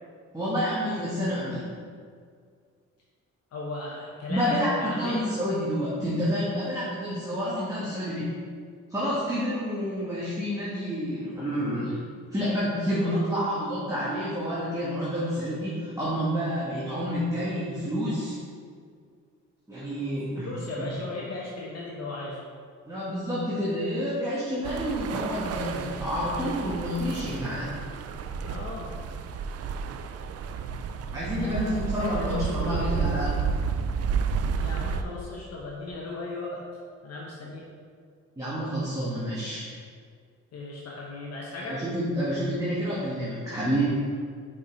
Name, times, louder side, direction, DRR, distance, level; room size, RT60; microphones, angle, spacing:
voice 1, 0.3-1.7 4.3-8.3 8.9-12.0 12.3-18.4 19.7-20.5 22.9-27.8 31.1-33.3 38.4-39.8 41.7-44.0, equal, 10° right, -9 dB, 1.6 m, -29 dB
voice 2, 3.5-5.3 12.9-13.2 19.8-19.9 20.4-22.4 28.4-28.9 31.4-33.2 34.6-36.6 37.0-37.6 40.5-41.8, left 2 dB, 55° left, -3 dB, 1.0 m, -37 dB
sound 1, 24.6-35.0, right 6 dB, 55° right, 0.5 m, -31 dB
5.4 x 5.4 x 3.9 m, 2.1 s
cardioid pair, 90°, 30 cm